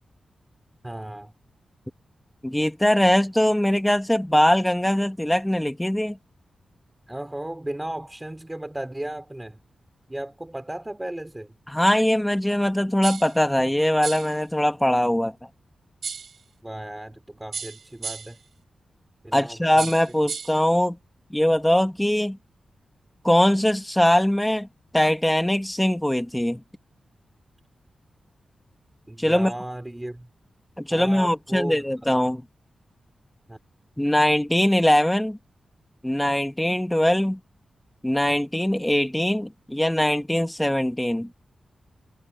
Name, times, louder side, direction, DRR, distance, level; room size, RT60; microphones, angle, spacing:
voice 1, 0.8-1.3 7.1-9.6 10.1-11.6 16.6-18.4 19.2-19.9 29.1-30.3 30.9-31.9 33.5-33.6, right 1 dB, 10° right, 3.7 m, -35 dB
voice 2, 2.4-6.2 11.7-15.3 19.3-21.0 21.3-22.4 23.2-24.7 24.9-26.6 29.2-29.5 30.8-32.4 34.0-35.4 36.0-37.4 38.0-41.3, left 1 dB, 5° left, 1.7 m, -21 dB
sound 1, 13.0-13.4 14.0-14.4 16.0-16.4 17.5-18.4 19.8-20.6, right 6 dB, 60° right, 4.4 m, -34 dB
wide cardioid pair, 160°, 0 cm